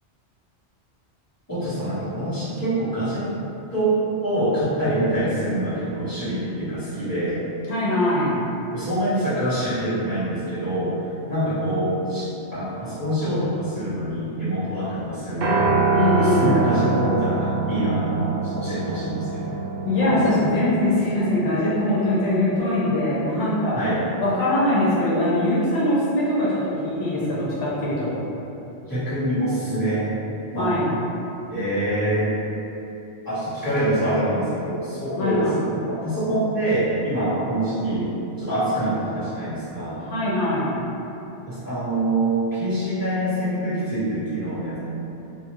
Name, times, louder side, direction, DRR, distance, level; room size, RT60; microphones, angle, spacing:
voice 1, 1.5-3.3 3.7-7.4 8.7-10.9 11.3-15.8 16.2-19.6 20.0-20.2 23.7-24.0 28.9-30.1 30.5-30.7 31.5-32.3 33.2-38.1 38.4-40.0 41.5-44.8, right 1 dB, 20° left, -14 dB, 1.1 m, -25 dB
voice 2, 7.7-8.4 15.9-16.6 19.5-23.8 24.2-28.2 30.6-30.9 35.2-35.6 40.0-40.8, left 1 dB, 80° left, -9 dB, 1.1 m, -22 dB
Piano, 15.4-23.7, right 3 dB, 65° right, 0.7 m, -26 dB
2.8 x 2.4 x 2.9 m, 2.9 s
omnidirectional pair, 1.2 m